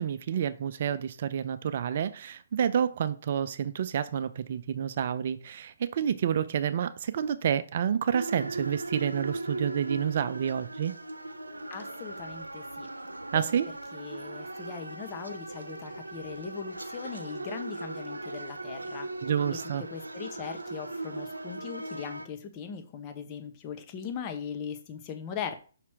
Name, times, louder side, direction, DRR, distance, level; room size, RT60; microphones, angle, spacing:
voice 1, 0.0-11.0 13.3-13.7 19.2-19.8, right 8 dB, 50° right, 0.5 m, -29 dB
sound 1, 8.1-22.3, right 2 dB, 90° right, 0.7 m, -38 dB
voice 2, 11.7-12.9 13.9-19.1 19.8-25.6, left 7 dB, 30° left, 1.1 m, -40 dB
5.9 x 4.3 x 4.8 m
figure-of-eight pair, 135°, 0 cm